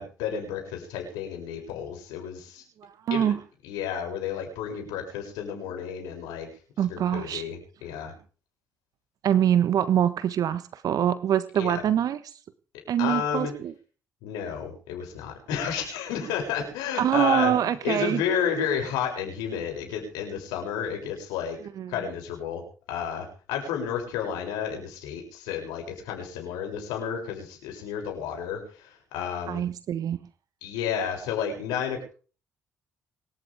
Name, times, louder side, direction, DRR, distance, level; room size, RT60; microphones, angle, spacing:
voice 1, 0.0-2.6 3.1-3.4 3.6-6.5 6.8-8.1 11.6-11.8 13.0-13.5 14.2-17.5 17.8-21.6 21.9-22.6 22.9-29.6 30.6-32.0, left 8 dB, 75° left, 1 dB, 7.3 m, -31 dB
voice 2, 2.8-3.4 6.8-7.4 9.2-12.3 12.9-13.7 17.0-18.2 21.7-21.9 29.5-30.2, right 10 dB, 55° right, 14 dB, 1.3 m, -24 dB
26.0 x 14.5 x 3.6 m, 0.39 s
hypercardioid pair, 45°, 7 cm